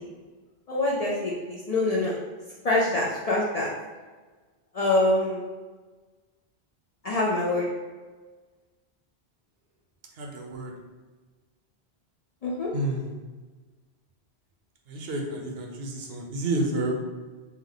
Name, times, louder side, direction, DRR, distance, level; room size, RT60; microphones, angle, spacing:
voice 1, 0.7-2.1 2.6-3.7 4.7-5.4 7.0-7.6 12.4-12.7, left 2 dB, 55° left, -4 dB, 0.4 m, -25 dB
voice 2, 10.2-10.7 12.7-13.1 14.9-17.0, right 1 dB, 75° right, 0 dB, 0.8 m, -30 dB
3.3 x 2.1 x 3.6 m, 1.3 s
omnidirectional pair, 1.1 m